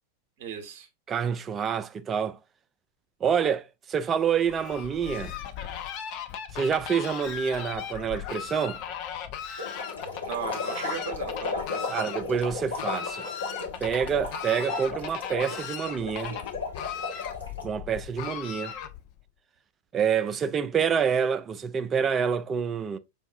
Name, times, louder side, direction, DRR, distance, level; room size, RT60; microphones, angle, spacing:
voice 1, 0.4-0.9 10.3-12.0, right 8 dB, 45° right, 0.9 m, -37 dB
voice 2, 1.1-2.4 3.2-5.3 6.5-8.8 11.9-13.3 13.8-16.4 17.6-18.7 19.9-23.0, right 7 dB, 25° right, 0.3 m, -27 dB
Fowl, 4.4-19.2, left 8 dB, 40° left, 0.5 m, -38 dB
sound 1, 9.6-17.6, left 4 dB, 70° left, 1.0 m, -35 dB
5.5 x 2.5 x 2.4 m
figure-of-eight pair, 90°, 0 cm